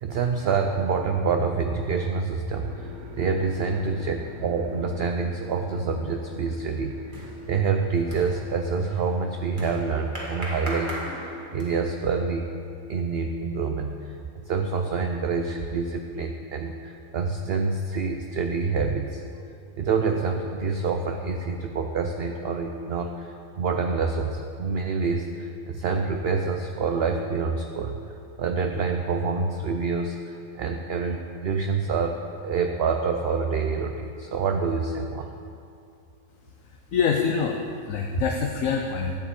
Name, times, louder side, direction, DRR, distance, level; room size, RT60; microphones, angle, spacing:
voice 1, 0.0-10.9 11.2-12.5 12.9-14.1 14.4-19.2 19.8-28.0 28.4-32.2 32.4-35.3, right 5 dB, 60° right, 4 dB, 0.6 m, -27 dB
sound 1, 2.6-13.9, left 6 dB, 85° left, 1.8 m, -49 dB
sound 2, 2.6-11.5 11.8-12.5, right 2 dB, 80° right, 1.5 m, -48 dB
sound 3, 6.2-12.0, right 1 dB, 35° right, 1.9 m, -39 dB
voice 2, 36.9-39.2, left 6 dB, 65° left, 1 dB, 1.1 m, -25 dB
12.0 x 5.1 x 8.3 m, 2.5 s
omnidirectional pair, 1.5 m